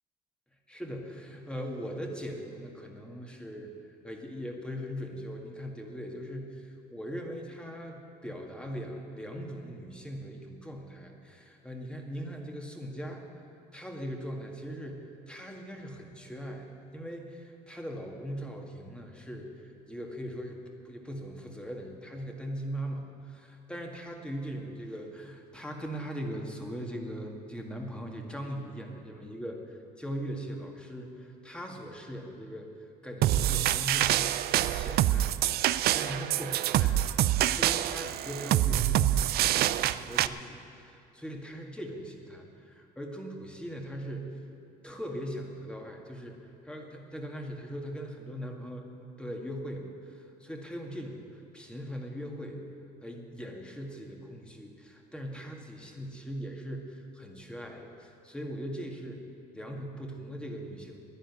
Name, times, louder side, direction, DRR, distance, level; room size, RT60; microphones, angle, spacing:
voice 1, 0.7-13.2 13.7-35.3 35.9-44.3 44.8-52.6 53.0-59.2 59.5-61.0, equal, 5° left, 1 dB, 1.9 m, -40 dB
sound 1, 33.2-40.3, right 13 dB, 65° right, 0.4 m, -26 dB
11.0 x 10.0 x 9.7 m, 2.5 s
cardioid pair, 110°, 17 cm